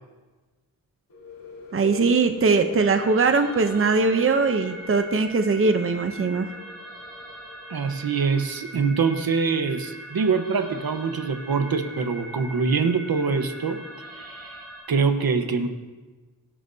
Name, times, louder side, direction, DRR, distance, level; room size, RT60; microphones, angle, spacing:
sound 1, 1.1-8.7, left 3 dB, 75° left, 4.4 m, -43 dB
voice 1, 1.7-6.5, right 4 dB, 35° right, 7 dB, 0.7 m, -21 dB
sound 2, 2.8-14.8, right 1 dB, ahead, 5.2 m, -41 dB
voice 2, 7.7-13.8 14.1-14.6 14.9-15.7, right 5 dB, 70° right, 7 dB, 1.2 m, -24 dB
24.0 x 12.0 x 2.8 m, 1.3 s
wide cardioid pair, 165°, 37 cm